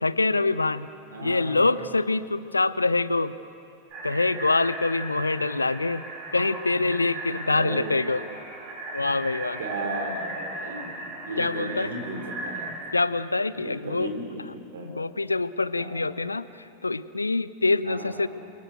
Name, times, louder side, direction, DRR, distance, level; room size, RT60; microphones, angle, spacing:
voice 1, 0.0-0.9 1.2-3.3 4.0-6.0 6.3-8.2 8.9-9.6 11.4-11.9 12.9-14.1 14.9-16.5 16.8-18.3, left 3 dB, 80° left, 17 dB, 0.6 m, -25 dB
voice 2, 1.1-1.8 7.4-8.0 9.6-12.8 13.5-14.9 15.7-16.2 17.9-18.3, right 2 dB, 65° right, 3 dB, 3.6 m, -35 dB
sound 1, 3.9-12.7, right 2 dB, 40° right, 7.2 m, -37 dB
29.5 x 23.0 x 8.0 m, 2.6 s
figure-of-eight pair, 90°, 0 cm